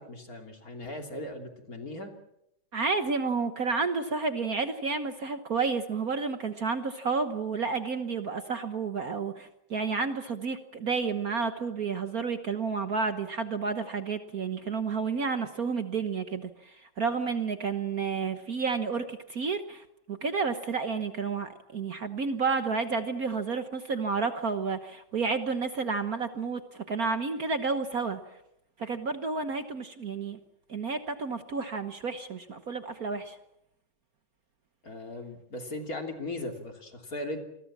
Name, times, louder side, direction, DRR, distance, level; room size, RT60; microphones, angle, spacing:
voice 1, 0.0-2.1 34.8-37.4, left 1 dB, 40° left, 4 dB, 3.4 m, -38 dB
voice 2, 2.7-26.6 26.9-28.2 28.8-30.4 30.7-33.4, right 4 dB, 50° right, 8 dB, 1.5 m, -31 dB
27.5 x 21.5 x 7.4 m, 0.82 s
omnidirectional pair, 2.3 m